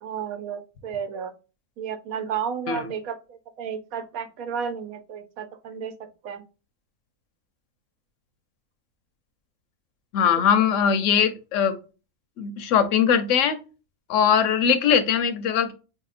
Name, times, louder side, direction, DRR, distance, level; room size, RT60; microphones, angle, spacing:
voice 1, 0.0-1.3 1.8-5.9 6.2-6.4, right 7 dB, 80° right, 9 dB, 1.1 m, -32 dB
voice 2, 10.1-11.8 12.4-13.6 14.1-15.7, left 7 dB, 65° left, 10 dB, 0.9 m, -21 dB
4.3 x 2.8 x 2.4 m, 0.32 s
omnidirectional pair, 1.5 m